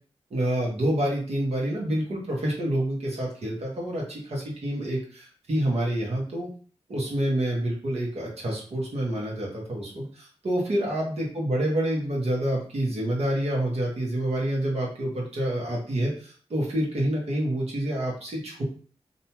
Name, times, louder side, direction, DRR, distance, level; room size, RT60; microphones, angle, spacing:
voice 1, 0.3-6.5 6.9-18.6, right 1 dB, 65° right, -3 dB, 1.1 m, -28 dB
2.7 x 2.2 x 3.0 m, 0.43 s
cardioid pair, 50°, 11 cm